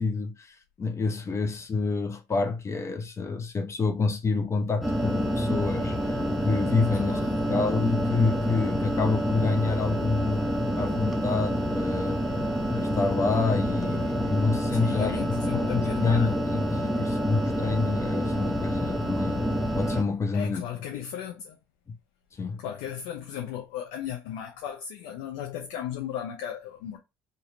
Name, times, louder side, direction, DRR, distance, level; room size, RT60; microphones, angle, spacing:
voice 1, 0.0-10.5 10.8-12.2 12.7-19.4 19.8-20.6 20.9-21.0 21.9-22.0 22.3-22.6, left 4 dB, 35° left, 0.8 m, -28 dB
sound 1, 4.8-20.0, equal, ahead, 0.8 m, -28 dB
voice 2, 7.0-7.6 14.7-16.3 17.0-17.2 20.3-21.6 22.6-27.0, left 9 dB, 80° left, 0.7 m, -36 dB
3.0 x 2.8 x 3.9 m
hypercardioid pair, 70°, 9 cm